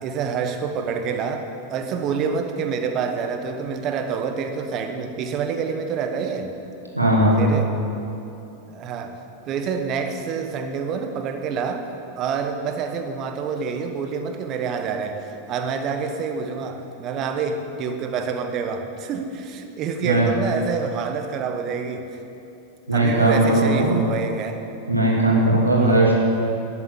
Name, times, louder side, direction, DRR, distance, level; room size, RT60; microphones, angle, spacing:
voice 1, 0.0-6.6 7.4-7.8 8.7-11.9 12.2-22.2 22.9-24.7 25.8-26.1, right 6 dB, 35° right, 7 dB, 1.2 m, -27 dB
voice 2, 7.0-7.5 20.0-20.3 22.9-24.0 24.9-26.1, right 1 dB, 85° right, -4 dB, 2.7 m, -18 dB
12.5 x 7.4 x 8.6 m, 2.9 s
figure-of-eight pair, 90°, 0 cm